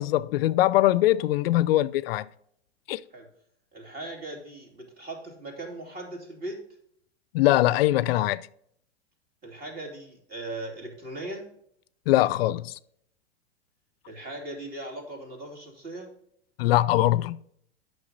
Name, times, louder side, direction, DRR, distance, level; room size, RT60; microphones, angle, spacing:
voice 1, 0.0-2.3 2.9-3.0 7.3-8.4 12.1-12.7 16.6-17.4, left 15 dB, 65° left, 0.5 m, -22 dB
voice 2, 3.7-6.6 9.4-11.5 14.1-16.1, right 2 dB, 30° right, 2.7 m, -39 dB
8.5 x 6.1 x 4.0 m
hypercardioid pair, 115°, 32 cm